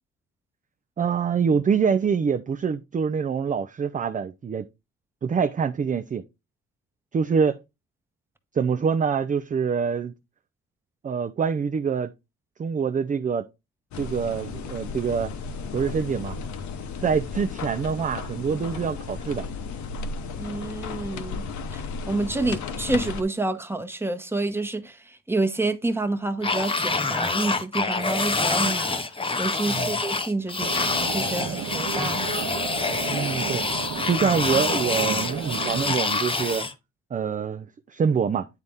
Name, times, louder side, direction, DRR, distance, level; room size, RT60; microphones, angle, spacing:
voice 1, 1.0-4.7 5.2-6.2 7.1-7.6 8.5-10.2 11.0-12.1 12.6-13.5 14.0-15.3 15.7-16.4 17.0-19.5 29.7-29.9 33.1-33.6 34.0-36.6 37.1-38.5, right 6 dB, 25° right, 0.4 m, -25 dB
sound 1, 13.9-23.2, left 5 dB, 70° left, 1.0 m, -34 dB
voice 2, 20.4-21.4 21.7-21.8 22.1-29.0 29.4-32.3, right 2 dB, 10° right, 0.9 m, -28 dB
sound 2, 26.4-36.7, left 3 dB, 20° left, 0.7 m, -26 dB
sound 3, 30.6-35.8, right 9 dB, 60° right, 0.7 m, -34 dB
9.2 x 4.1 x 3.5 m
cardioid pair, 90°, 30 cm